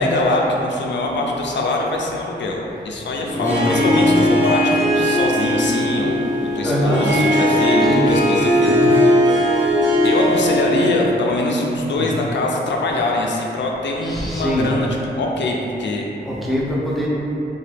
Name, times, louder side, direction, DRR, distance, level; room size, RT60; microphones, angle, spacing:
voice 1, 0.0-6.3 6.5-9.2 10.0-16.1, left 2 dB, 80° left, -1 dB, 0.4 m, -23 dB
Harp, 3.2-11.1, equal, 80° right, 0.8 m, -18 dB
voice 2, 3.3-4.2 6.6-7.0 7.8-8.0 8.6-8.9 11.9-12.1 14.0-14.7 16.2-17.1, equal, ahead, -6 dB, 0.5 m, -23 dB
2.9 x 2.3 x 3.2 m, 3.0 s
wide cardioid pair, 105°, 19 cm